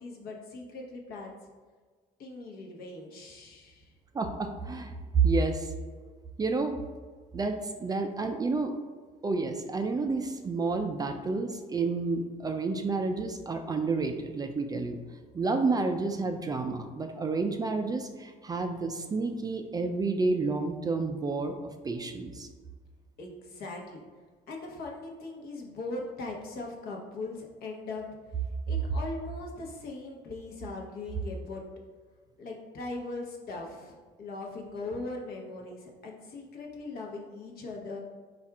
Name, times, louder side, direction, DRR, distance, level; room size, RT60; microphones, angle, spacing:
voice 1, 0.0-1.4 2.2-3.9 23.2-24.0 24.5-31.6 32.4-38.0, left 2 dB, 65° left, 0 dB, 0.9 m, -40 dB
voice 2, 4.1-5.7 6.4-6.8 7.3-8.7 9.2-15.0 15.3-21.6 21.8-22.5, right 3 dB, 25° right, 5 dB, 0.3 m, -30 dB
4.2 x 2.4 x 4.6 m, 1.5 s
cardioid pair, 110°, 17 cm